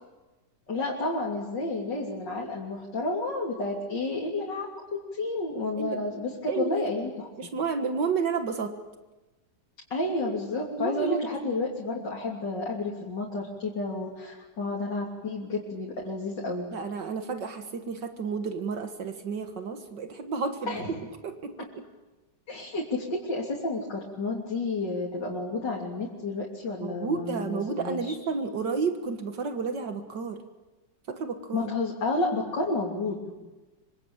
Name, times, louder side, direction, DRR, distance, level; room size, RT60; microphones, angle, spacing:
voice 1, 0.7-7.3 9.9-16.7 20.7-20.9 22.5-28.1 31.5-33.4, left 2 dB, 85° left, -3 dB, 3.9 m, -31 dB
voice 2, 5.8-6.1 6.5-6.9 7.4-8.7 10.8-11.2 16.7-20.9 21.2-21.8 26.8-30.4 31.1-31.7, right 5 dB, 80° right, 7 dB, 2.2 m, -31 dB
25.5 x 25.5 x 8.9 m, 1.1 s
omnidirectional pair, 1.9 m